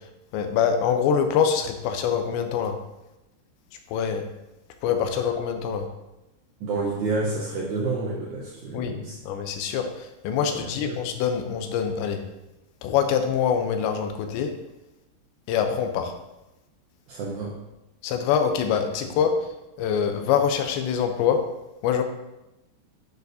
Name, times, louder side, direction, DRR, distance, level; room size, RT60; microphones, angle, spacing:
voice 1, 0.3-2.7 3.9-4.2 4.8-5.8 8.7-9.0 9.2-12.2 12.8-14.5 15.5-16.1 18.0-19.3 19.8-21.4 21.8-22.0, left 7 dB, 85° left, 6 dB, 3.0 m, -24 dB
voice 2, 6.6-9.2 10.5-11.0 17.1-17.6 19.0-19.1, right 3 dB, 80° right, -4 dB, 1.7 m, -30 dB
10.5 x 6.6 x 2.8 m, 0.96 s
omnidirectional pair, 5.1 m